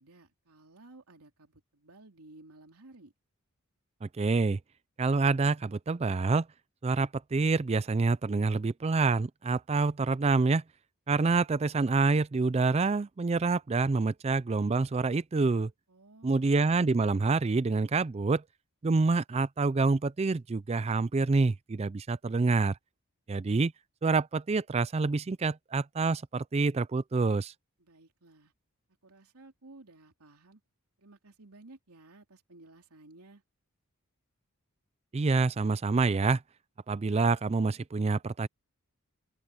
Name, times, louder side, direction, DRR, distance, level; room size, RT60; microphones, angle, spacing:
voice 1, 0.0-3.1 15.9-16.5 27.8-28.5 29.0-30.6 31.0-33.4, right 2 dB, 85° right, 3.2 m, -55 dB
voice 2, 4.0-4.6 5.0-6.5 6.8-10.6 11.1-15.7 16.2-18.4 18.8-22.8 23.3-23.7 24.0-27.5 35.1-36.4 36.9-38.5, right 3 dB, 30° right, 0.3 m, -27 dB
open air
head